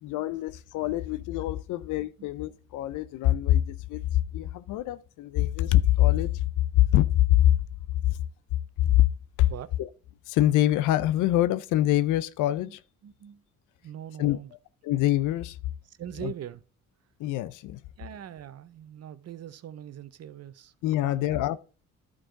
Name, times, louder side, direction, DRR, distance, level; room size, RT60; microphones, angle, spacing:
voice 1, 0.0-6.4 6.7-7.5 8.1-8.2 8.8-9.1 9.4-9.5 9.8-9.9 10.3-12.8 14.2-14.4 14.8-15.6 16.2-16.3 17.2-17.8 20.8-21.6, left 14 dB, 85° left, 0.5 m, -24 dB
voice 2, 13.0-13.4 13.8-14.5 15.9-16.6 18.0-20.7 21.0-21.4, right 10 dB, 55° right, 0.7 m, -42 dB
11.0 x 4.8 x 3.8 m
cardioid pair, 90°, 30 cm